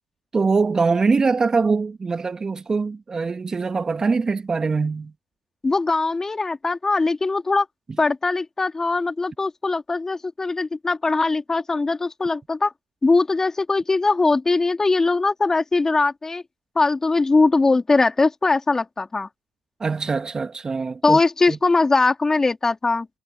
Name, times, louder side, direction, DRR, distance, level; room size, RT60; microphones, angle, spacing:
voice 1, 0.3-5.1 19.8-21.2 21.5-21.6, right 4 dB, 30° right, 1.6 m, -23 dB
voice 2, 5.6-7.7 8.0-12.7 13.0-16.4 16.8-19.3 21.0-23.1, left 3 dB, 25° left, 2.3 m, -21 dB
hypercardioid pair, 55°, 2 cm